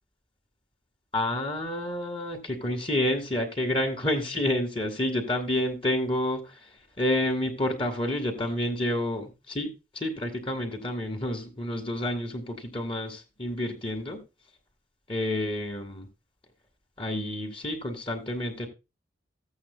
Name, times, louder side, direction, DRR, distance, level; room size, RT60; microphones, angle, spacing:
voice 1, 1.1-6.4 7.0-9.7 10.0-14.2 15.1-16.1 17.0-18.7, left 1 dB, 30° left, 3 dB, 2.1 m, -29 dB
14.5 x 8.6 x 2.3 m, 0.27 s
head